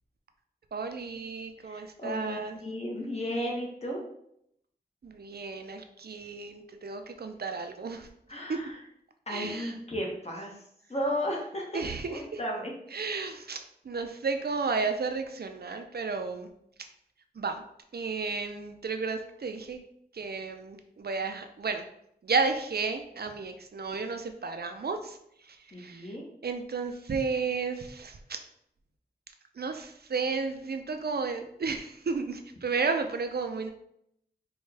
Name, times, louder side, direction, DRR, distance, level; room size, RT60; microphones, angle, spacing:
voice 1, 0.7-2.6 5.0-8.1 8.5-8.6 9.3-9.7 11.7-12.4 12.9-13.6 13.8-16.5 17.4-17.6 17.9-19.8 20.1-21.8 22.2-25.2 25.4-26.1 26.4-28.4 29.6-33.7, right 4 dB, 70° right, 6 dB, 0.5 m, -33 dB
voice 2, 1.6-4.0 8.3-8.7 9.3-10.5 10.9-11.8 12.1-12.7 25.7-26.2, equal, 40° left, -2 dB, 1.1 m, -34 dB
4.3 x 2.3 x 3.3 m, 0.73 s
wide cardioid pair, 50°, 17 cm